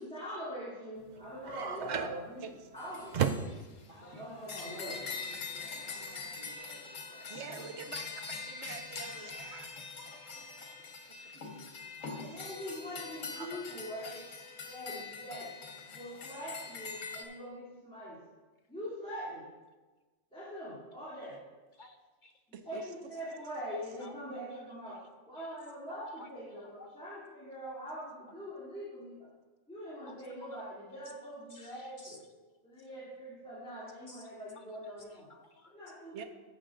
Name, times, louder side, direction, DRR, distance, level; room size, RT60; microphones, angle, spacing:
voice 1, 0.0-2.4 2.7-3.5 4.0-5.1 12.1-14.2 14.7-15.5 15.9-18.2 18.7-19.5 20.3-21.4 22.7-25.0 25.3-29.3 29.7-32.2 32.6-35.3 35.6-36.3, equal, 5° left, -11 dB, 2.6 m, -43 dB
sound 1, 1.0-6.5, right 7 dB, 80° right, 0.4 m, -37 dB
sound 2, 2.8-17.2, left 5 dB, 75° left, 1.6 m, -43 dB
voice 2, 3.9-8.2 12.0-12.3, equal, 40° right, -4 dB, 2.2 m, -55 dB
voice 3, 7.3-9.9 11.1-11.4 13.4-13.6 22.5-22.9 36.1-36.2, right 6 dB, 65° right, 7 dB, 1.0 m, -46 dB
voice 4, 10.0-10.3 11.2-11.4 21.8-22.3 24.0-24.2 25.9-26.3 26.8-27.0 31.5-32.2 34.1-34.2 34.6-34.7 35.3-35.7, left 2 dB, 60° left, 6 dB, 0.5 m, -54 dB
13.5 x 6.3 x 3.8 m, 1.2 s
omnidirectional pair, 1.4 m